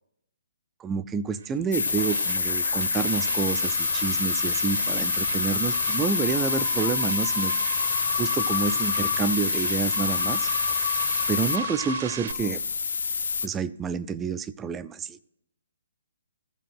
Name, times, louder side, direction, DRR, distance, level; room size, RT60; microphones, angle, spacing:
voice 1, 0.8-7.5 8.2-10.5 11.3-12.6 13.4-15.2, right 6 dB, 10° right, 13 dB, 0.3 m, -29 dB
sound 1, 1.3-12.3, right 7 dB, 50° right, 0.7 m, -36 dB
sound 2, 1.7-11.6 12.3-13.5, left 5 dB, 75° left, 0.5 m, -27 dB
sound 3, 3.0-12.7, left 9 dB, 50° left, 1.3 m, -36 dB
14.5 x 5.1 x 7.8 m, 0.77 s
hypercardioid pair, 160°, 0 cm